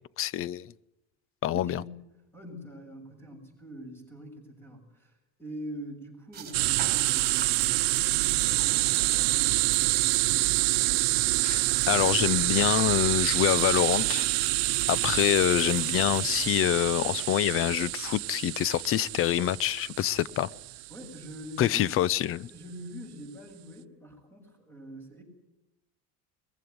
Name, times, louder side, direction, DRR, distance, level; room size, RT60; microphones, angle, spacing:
voice 1, 0.2-0.7 1.4-1.8 11.4-14.3 14.9-20.5 21.6-22.5, left 13 dB, 40° left, 0.7 m, -26 dB
voice 2, 1.5-2.0 2.3-10.3 20.9-22.1 22.4-25.2, equal, 5° left, 7.1 m, -44 dB
sound 1, 6.3-16.6, right 7 dB, 25° right, 3.7 m, -44 dB
sound 2, 6.5-21.1, right 23 dB, 90° right, 0.9 m, -27 dB
22.0 x 15.0 x 9.4 m
cardioid pair, 140°, 34 cm